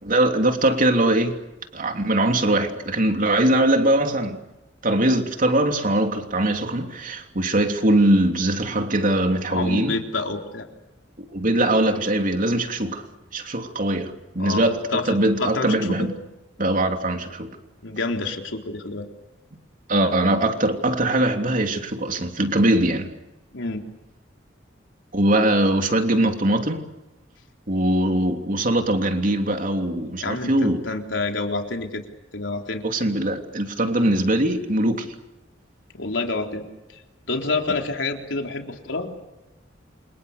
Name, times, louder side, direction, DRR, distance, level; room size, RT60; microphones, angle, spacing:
voice 1, 0.0-1.4 1.7-4.4 4.8-10.0 11.3-13.1 13.3-16.1 16.6-17.6 19.9-23.1 25.1-26.9 27.7-30.8 32.8-35.1, right 1 dB, 45° right, 5 dB, 3.2 m, -21 dB
voice 2, 9.5-10.7 14.4-16.1 17.8-19.1 23.5-23.9 30.2-32.0 32.3-32.8 35.9-36.6 36.9-37.0 37.3-39.1, left 3 dB, 90° left, 3 dB, 3.8 m, -28 dB
29.0 x 26.5 x 6.8 m, 0.99 s
head